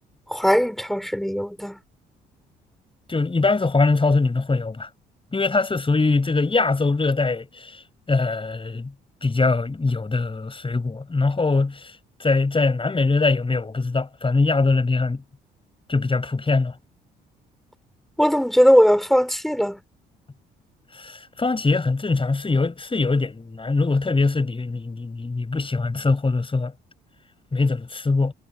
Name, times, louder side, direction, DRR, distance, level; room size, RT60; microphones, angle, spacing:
voice 1, 0.3-1.8 18.2-19.8, equal, ahead, 5.8 m, -19 dB
voice 2, 3.1-4.9 5.3-7.8 8.1-8.9 9.2-11.9 12.2-15.2 15.9-16.7 20.9-26.7 27.5-28.3, left 3 dB, 25° left, 6.8 m, -22 dB
hypercardioid pair, 55°, 21 cm